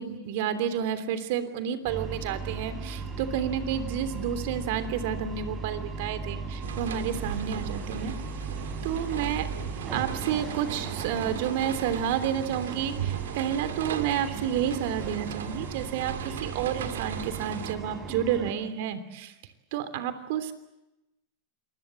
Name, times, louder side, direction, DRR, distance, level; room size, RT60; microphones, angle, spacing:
voice 1, 0.0-8.1 8.8-9.5 9.9-16.1 16.4-19.3 19.7-20.5, right 9 dB, 65° right, 11 dB, 3.1 m, -30 dB
sound 1, 1.8-18.5, right 4 dB, 30° right, 7.7 m, -37 dB
sound 2, 6.6-17.7, right 9 dB, 90° right, 2.0 m, -37 dB
27.0 x 21.5 x 7.7 m, 0.93 s
hypercardioid pair, 115°, 0 cm